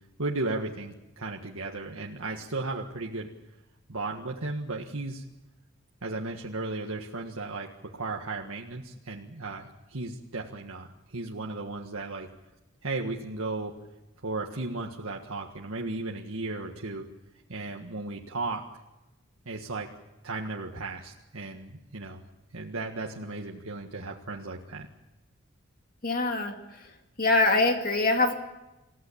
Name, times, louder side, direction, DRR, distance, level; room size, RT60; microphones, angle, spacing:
voice 1, 0.2-3.3 3.9-5.2 6.0-7.7 7.9-12.3 12.8-13.7 14.2-17.1 17.5-18.6 19.5-19.9 20.2-22.3 22.5-24.9, right 2 dB, 80° right, 0 dB, 1.7 m, -35 dB
voice 2, 26.0-26.9 27.2-28.3, left 2 dB, 40° left, 4 dB, 2.3 m, -24 dB
28.5 x 15.5 x 8.7 m, 0.99 s
head